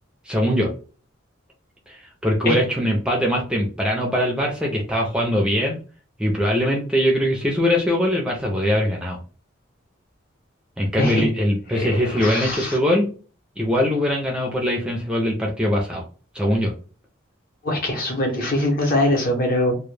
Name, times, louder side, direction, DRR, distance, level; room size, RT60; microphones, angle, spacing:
voice 1, 0.3-0.7 1.9-5.8 6.2-9.2 10.8-13.1 13.6-16.0 16.3-16.7, equal, 5° right, -1 dB, 0.4 m, -22 dB
voice 2, 11.7-12.8 17.6-19.8, left 1 dB, 45° left, 1 dB, 0.7 m, -22 dB
2.1 x 2.1 x 3.1 m, 0.37 s
head